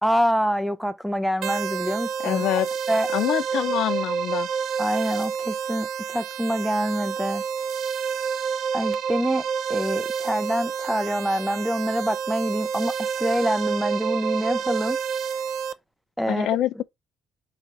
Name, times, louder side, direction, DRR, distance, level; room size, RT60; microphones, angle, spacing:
voice 1, 0.0-2.4 2.9-3.1 4.8-7.4 8.7-9.4 9.7-15.0 16.2-16.5, equal, ahead, 0.5 m, -26 dB
sound 1, 1.4-15.7, right 7 dB, 65° right, 0.5 m, -28 dB
voice 2, 2.2-2.7 3.1-4.5 16.3-16.8, left 13 dB, 75° left, 0.5 m, -25 dB
5.0 x 4.0 x 4.7 m
cardioid pair, 160°, 0 cm